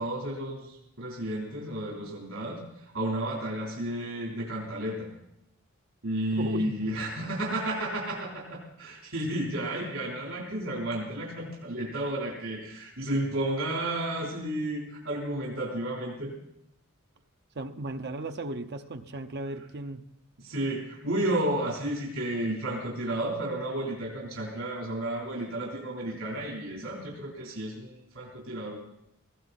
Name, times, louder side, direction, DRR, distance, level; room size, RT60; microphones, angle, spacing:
voice 1, 0.0-5.1 6.0-16.3 20.4-28.8, right 1 dB, 80° right, -3 dB, 3.7 m, -32 dB
voice 2, 6.4-6.9 17.6-20.0, right 2 dB, 55° right, 7 dB, 0.8 m, -36 dB
18.5 x 16.0 x 4.1 m, 0.82 s
head